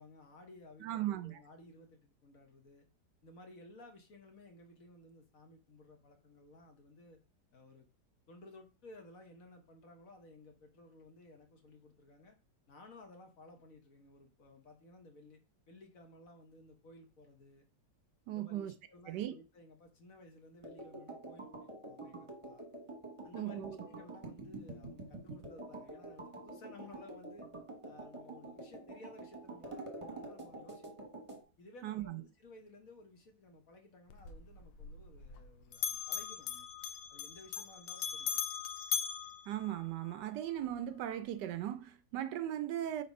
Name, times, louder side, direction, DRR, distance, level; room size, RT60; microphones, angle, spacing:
voice 1, 0.0-2.9 3.2-7.2 7.5-7.9 8.3-12.3 12.7-15.4 15.7-17.6 18.3-22.6 23.2-27.5 27.8-30.9 31.6-36.7 37.1-38.4, left 2 dB, 55° left, 1.4 m, -57 dB
voice 2, 0.8-1.4 18.3-18.7 19.1-19.3 23.3-23.8 31.8-32.2 39.5-43.0, right 12 dB, 75° right, 1.1 m, -38 dB
sound 1, 20.6-31.4, right 2 dB, 20° right, 1.2 m, -47 dB
Bell, 34.1-35.5 35.7-40.2, left 9 dB, 85° left, 1.4 m, -39 dB
4.5 x 4.2 x 5.3 m
omnidirectional pair, 2.0 m